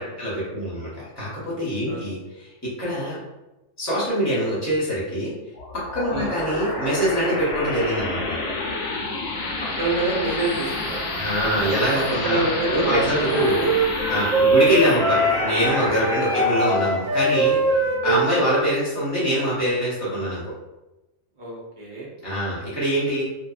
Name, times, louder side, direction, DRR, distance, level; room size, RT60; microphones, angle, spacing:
voice 1, 0.0-2.5 2.8-3.2 3.8-5.3 5.7-8.4 11.1-13.5 14.1-17.6 18.0-20.5 22.2-23.2, equal, 15° left, -8 dB, 1.0 m, -24 dB
sound 1, 5.5-18.7, left 2 dB, 75° left, 0.9 m, -30 dB
voice 2, 9.8-11.0 12.2-13.7 16.0-16.4 21.4-22.1, right 2 dB, 45° right, -6 dB, 0.8 m, -26 dB
Wind instrument woodwind instrument, 13.2-18.7, right 2 dB, 85° right, 1.0 m, -22 dB
2.7 x 2.5 x 2.4 m, 1.0 s
omnidirectional pair, 1.3 m